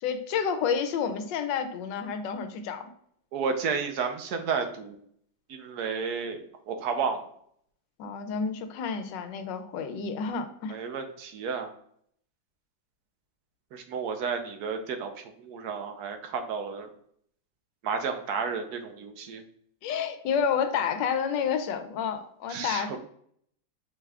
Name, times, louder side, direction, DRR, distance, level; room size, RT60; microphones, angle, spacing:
voice 1, 0.0-2.9 8.0-10.8 19.8-23.0, left 7 dB, 80° left, 8 dB, 1.3 m, -30 dB
voice 2, 3.3-5.0 5.5-7.3 10.7-11.7 13.7-16.9 17.8-19.4 22.5-23.0, right 5 dB, 65° right, 6 dB, 1.1 m, -32 dB
6.1 x 2.4 x 3.2 m, 0.65 s
omnidirectional pair, 1.9 m